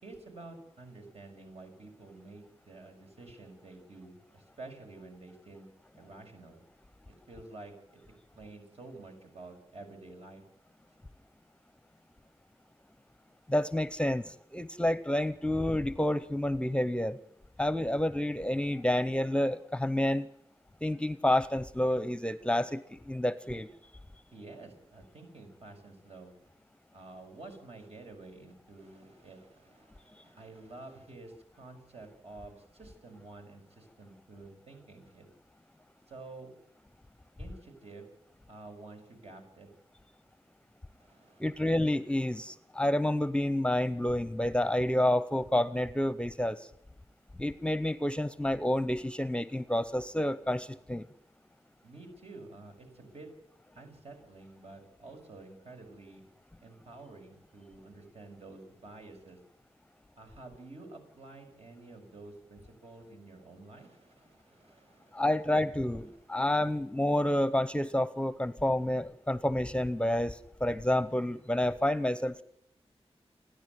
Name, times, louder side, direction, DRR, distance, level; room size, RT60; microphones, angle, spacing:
voice 1, 0.0-5.7 5.9-6.6 7.3-8.0 8.3-10.4 24.3-26.4 26.9-35.3 36.1-36.5 37.4-38.1 38.5-39.7 41.0-41.8 51.8-53.3 53.7-56.2 56.6-59.4 60.1-65.3 66.1-66.4, right 2 dB, 70° right, 3 dB, 6.1 m, -50 dB
voice 2, 13.5-17.2 17.6-20.3 20.8-23.7 41.4-46.7 47.4-51.1 65.1-72.4, left 1 dB, 10° left, 15 dB, 0.7 m, -29 dB
30.0 x 10.5 x 9.5 m, 0.74 s
wide cardioid pair, 125°, 11 cm